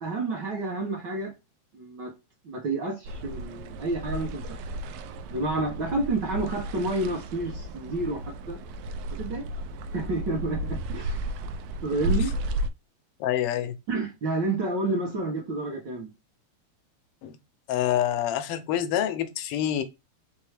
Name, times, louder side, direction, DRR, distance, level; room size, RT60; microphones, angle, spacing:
voice 1, 0.0-1.3 1.7-2.1 2.4-4.6 5.3-8.6 9.1-9.5 9.9-11.3 11.8-12.3 13.9-16.1, right 2 dB, 65° right, 1.1 m, -30 dB
sound 1, 3.1-12.7, right 1 dB, 85° right, 1.4 m, -33 dB
voice 2, 13.2-13.8 17.2-17.3 17.7-19.8, left 11 dB, 85° left, 1.3 m, -27 dB
4.6 x 3.4 x 3.3 m
omnidirectional pair, 3.3 m